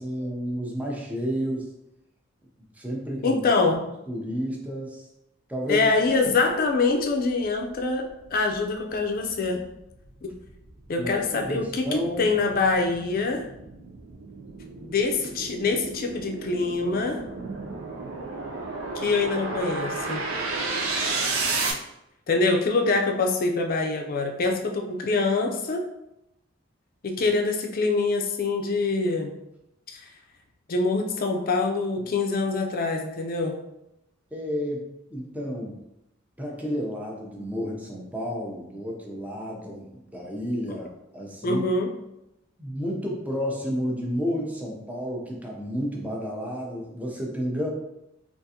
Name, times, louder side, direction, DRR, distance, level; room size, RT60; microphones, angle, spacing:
voice 1, 0.0-1.7 2.7-3.4 4.1-5.1 5.5-6.4 11.0-12.3 34.3-35.8 36.4-40.9 41.1-41.6 42.6-47.7, equal, 10° right, -2 dB, 0.6 m, -31 dB
voice 2, 3.2-3.8 5.7-9.6 10.2-10.3 10.9-13.5 14.8-17.2 18.9-20.3 22.3-25.8 27.0-29.3 29.9-30.0 30.7-33.6 40.7-40.8 41.4-41.9, left 3 dB, 45° left, 3 dB, 0.5 m, -25 dB
sound 1, 7.0-7.1 7.6-21.7, right 3 dB, 85° right, 0.5 m, -33 dB
3.6 x 2.5 x 2.7 m, 0.86 s
head